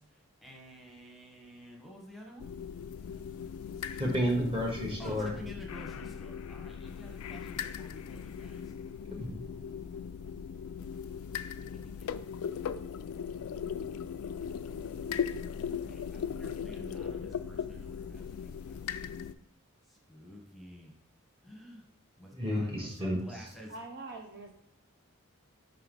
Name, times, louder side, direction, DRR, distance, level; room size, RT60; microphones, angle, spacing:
voice 1, 0.0-2.6 5.0-8.7 11.5-12.2 15.6-19.2 19.8-20.9 21.4-21.8 22.2-23.8, equal, ahead, -1 dB, 1.1 m, -51 dB
sound 1, 2.4-19.3, left 7 dB, 75° left, 0.3 m, -38 dB
voice 2, 3.9-5.4 9.1-9.4 22.3-23.2, equal, 25° right, 0 dB, 1.5 m, -31 dB
voice 3, 23.7-24.5, right 2 dB, 50° right, 3 dB, 0.6 m, -43 dB
5.5 x 5.3 x 4.0 m, 0.64 s
head